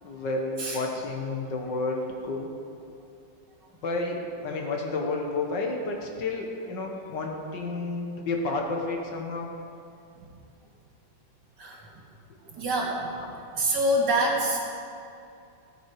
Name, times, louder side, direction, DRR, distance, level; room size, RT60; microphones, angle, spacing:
voice 1, 0.0-2.5 3.7-9.5 13.1-13.3, left 3 dB, 70° left, 1 dB, 2.0 m, -31 dB
voice 2, 12.6-13.2 13.5-14.6, right 1 dB, 65° right, -2 dB, 2.4 m, -25 dB
15.0 x 9.1 x 4.8 m, 2.6 s
omnidirectional pair, 2.1 m